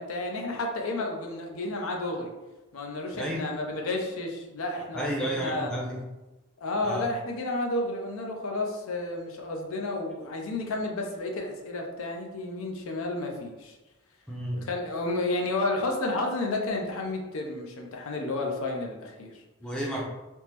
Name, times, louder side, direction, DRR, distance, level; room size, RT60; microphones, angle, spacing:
voice 1, 0.0-2.3 2.7-5.7 6.6-13.8 14.5-19.4, left 2 dB, 85° left, 2 dB, 0.5 m, -31 dB
voice 2, 3.1-3.4 4.9-6.0 6.8-7.1 14.3-14.6 19.6-20.0, right 1 dB, 5° left, -4 dB, 0.5 m, -31 dB
3.4 x 2.0 x 2.9 m, 1.1 s
head